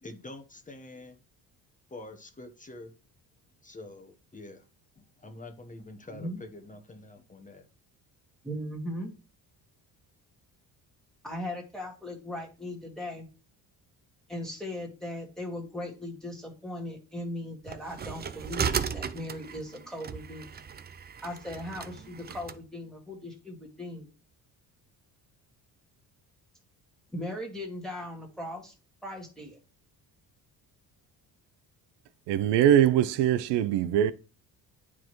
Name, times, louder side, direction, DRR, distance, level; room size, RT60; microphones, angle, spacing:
voice 1, 0.0-1.2 1.9-2.9 3.6-4.6 5.0-7.6, left 2 dB, 20° left, 1.0 m, -46 dB
voice 2, 6.1-6.4 8.4-9.1 11.2-13.3 14.3-20.6 21.2-24.1 27.1-28.7 29.0-29.6, left 1 dB, ahead, 1.6 m, -38 dB
sound 1, 17.7-22.6, right 7 dB, 25° right, 0.4 m, -35 dB
voice 3, 32.3-34.1, right 10 dB, 85° right, 0.6 m, -22 dB
9.1 x 4.8 x 3.1 m
cardioid pair, 105°, 41 cm